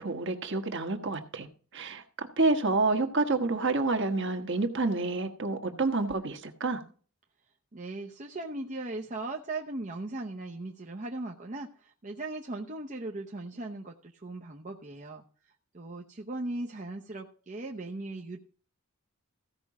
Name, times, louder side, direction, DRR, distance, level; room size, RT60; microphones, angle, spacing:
voice 1, 0.0-1.5 1.7-6.8, right 3 dB, 55° right, 6 dB, 1.3 m, -28 dB
voice 2, 7.7-15.2 15.7-18.4, right 2 dB, 35° right, 1 dB, 0.8 m, -38 dB
15.5 x 5.3 x 4.8 m, 0.41 s
head